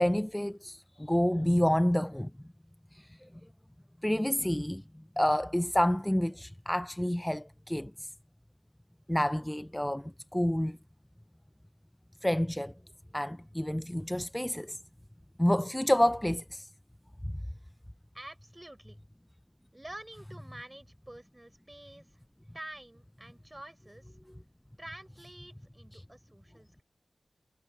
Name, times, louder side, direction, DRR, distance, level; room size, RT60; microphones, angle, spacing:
voice 1, 0.0-2.3 4.0-4.8 5.2-8.1 9.1-10.8 12.2-12.7 13.1-14.8 15.4-16.7, equal, 10° left, 0.3 m, -28 dB
voice 2, 18.1-19.0 19.7-22.2 22.5-24.2 24.8-26.8, right 1 dB, 20° right, 5.1 m, -48 dB
wide cardioid pair, 65°, 0 cm